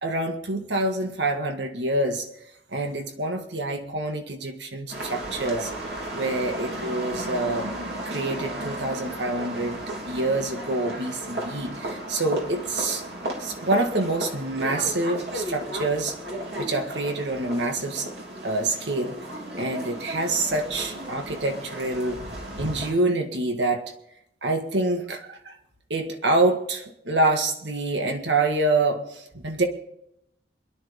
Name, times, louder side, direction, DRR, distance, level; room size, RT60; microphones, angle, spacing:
voice 1, 0.0-2.3 2.7-5.7 6.1-7.8 8.1-13.0 13.4-16.2 16.6-18.1 18.4-19.2 19.5-22.2 22.6-23.9 24.4-25.6 25.9-29.6, right 2 dB, 85° right, 4 dB, 1.9 m, -26 dB
sound 1, 4.9-22.9, right 1 dB, 65° right, 3.4 m, -34 dB
27.5 x 11.0 x 3.6 m, 0.79 s
head